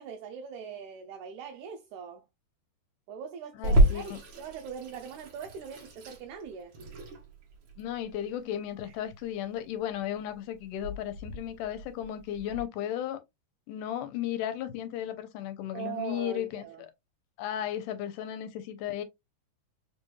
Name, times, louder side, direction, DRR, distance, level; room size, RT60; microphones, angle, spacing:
voice 1, 0.0-2.3 3.1-6.7 8.8-8.9 15.7-16.9, right 7 dB, 80° right, 1.8 m, -41 dB
voice 2, 3.6-4.2 7.8-13.2 13.7-16.9 17.4-19.0, left 11 dB, 80° left, 2.1 m, -35 dB
Water tap faucet / Sink (filling or washing), 3.6-12.6, right 1 dB, 60° right, 1.3 m, -30 dB
4.9 x 3.1 x 2.2 m
omnidirectional pair, 3.7 m